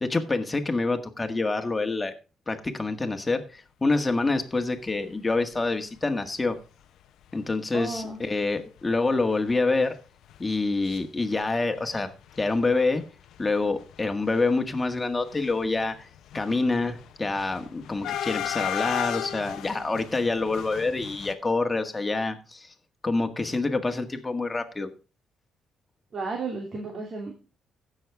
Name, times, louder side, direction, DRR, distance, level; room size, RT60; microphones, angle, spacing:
voice 1, 0.0-2.1 2.5-6.6 7.3-9.9 10.4-12.1 12.4-13.1 13.4-16.1 16.3-22.7 23.0-24.9, left 3 dB, 20° left, 5 dB, 1.7 m, -26 dB
sound 1, 5.4-5.6 6.1-6.2 6.3-6.5 7.3-7.4 7.8-8.0 8.3-8.4 8.8-11.0 11.2-12.0 12.2-21.3, left 11 dB, 80° left, 0.8 m, -36 dB
voice 2, 7.7-8.2 26.1-27.3, right 3 dB, 50° right, 0 dB, 2.8 m, -33 dB
16.0 x 6.5 x 3.6 m, 0.33 s
cardioid pair, 90°, 0 cm